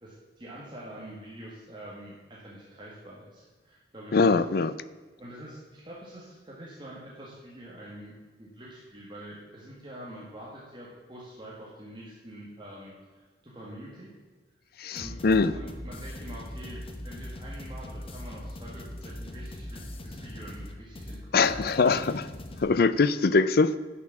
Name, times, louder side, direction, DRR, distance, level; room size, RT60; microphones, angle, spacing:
voice 1, 0.0-4.3 5.2-8.1 8.4-14.1 14.9-15.1 15.5-22.0, right 1 dB, 25° right, -5 dB, 1.7 m, -45 dB
voice 2, 4.1-4.7 14.8-15.5 21.3-22.2 22.6-23.7, left 4 dB, 50° left, 15 dB, 0.5 m, -22 dB
sound 1, 15.0-22.6, left 1 dB, 30° left, 1.0 m, -40 dB
9.5 x 6.8 x 7.2 m, 1.4 s
head